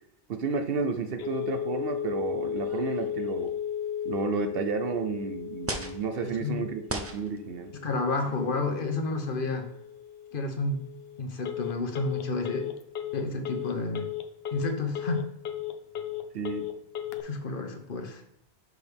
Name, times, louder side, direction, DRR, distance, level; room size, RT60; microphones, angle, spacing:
voice 1, 0.3-3.5 4.0-7.7 16.3-16.7, right 5 dB, 70° right, 7 dB, 0.9 m, -32 dB
Telephone, 1.2-17.2, left 10 dB, 75° left, 0.8 m, -36 dB
sound 1, 2.6-3.6 4.5-4.6 5.7-6.0 6.8-7.4 8.2-8.5, right 1 dB, 20° right, 0.5 m, -37 dB
voice 2, 6.2-6.7 7.8-9.7 10.3-10.8 11.2-12.7 13.1-14.0 14.5-15.3 17.2-18.2, left 3 dB, 60° left, 5 dB, 1.1 m, -30 dB
6.4 x 5.0 x 3.5 m, 0.80 s
omnidirectional pair, 1.0 m